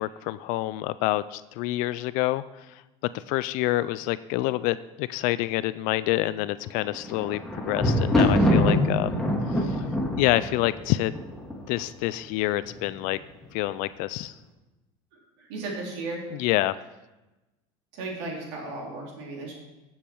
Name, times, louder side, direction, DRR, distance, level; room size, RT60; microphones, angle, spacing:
voice 1, 0.0-2.4 2.7-2.8 3.1-9.2 9.5-9.8 10.2-11.1 11.7-13.2 13.5-14.3 16.3-16.7, left 17 dB, 65° left, 15 dB, 0.4 m, -27 dB
Thunder, 6.8-11.9 12.6-13.2 13.4-13.5, left 1 dB, 5° left, 2.0 m, -24 dB
voice 2, 15.5-16.3 17.9-19.5, right 2 dB, 85° right, -1 dB, 3.6 m, -35 dB
14.0 x 7.3 x 4.6 m, 1.0 s
supercardioid pair, 125°, 15 cm